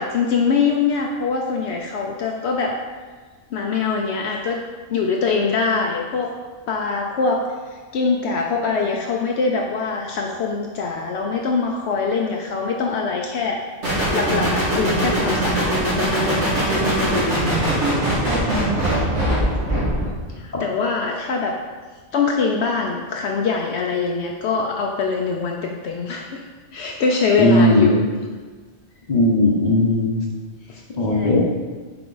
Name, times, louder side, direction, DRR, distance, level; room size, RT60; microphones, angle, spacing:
voice 1, 0.0-2.7 3.5-4.6 4.9-6.3 6.7-7.4 7.9-13.6 14.1-17.3 20.4-21.5 22.1-26.4 26.7-28.1 30.7-30.8 31.1-31.4, left 4 dB, 70° left, 0 dB, 0.8 m, -23 dB
sound 1, 13.8-20.2, right 1 dB, 90° right, 2.4 m, -21 dB
voice 2, 27.4-28.0 29.1-30.2 31.0-31.4, left 1 dB, 45° left, -2 dB, 0.9 m, -17 dB
5.8 x 4.6 x 3.9 m, 1.4 s
omnidirectional pair, 1.2 m